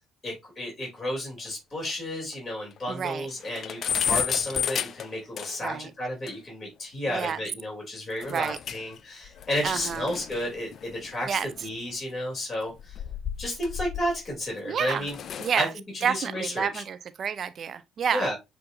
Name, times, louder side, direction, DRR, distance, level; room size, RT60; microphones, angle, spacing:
voice 1, 0.2-13.0 13.4-15.2 15.5-15.7 15.9-16.8 18.1-18.3, left 1 dB, 25° left, 2.9 m, -32 dB
sound 1, 1.5-1.6 1.9-2.0 2.3-2.4 2.8-2.9 3.2-5.8 6.3-6.4 8.2-9.0 9.2-11.9 12.7-14.3 14.8-15.6, left 8 dB, 55° left, 0.4 m, -33 dB
voice 2, 2.9-3.3 5.6-5.9 7.1-7.4 8.3-8.6 9.6-10.1 11.3-11.5 14.7-15.1 15.4-15.7 16.0-18.3, right 7 dB, 50° right, 0.4 m, -29 dB
7.6 x 2.6 x 2.6 m
hypercardioid pair, 55°, 0 cm